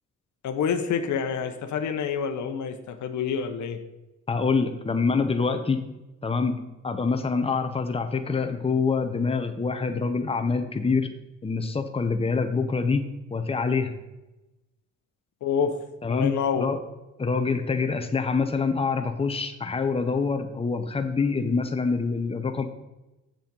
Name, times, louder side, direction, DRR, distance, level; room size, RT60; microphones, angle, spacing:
voice 1, 0.4-3.8 15.4-15.8 16.1-16.7, left 6 dB, 70° left, 7 dB, 1.0 m, -27 dB
voice 2, 4.3-5.8 6.2-6.6 6.8-11.1 11.4-14.0 16.0-16.8 17.2-22.6, left 4 dB, 20° left, 6 dB, 1.0 m, -26 dB
7.5 x 7.4 x 5.4 m, 1.0 s
cardioid pair, 90°, 30 cm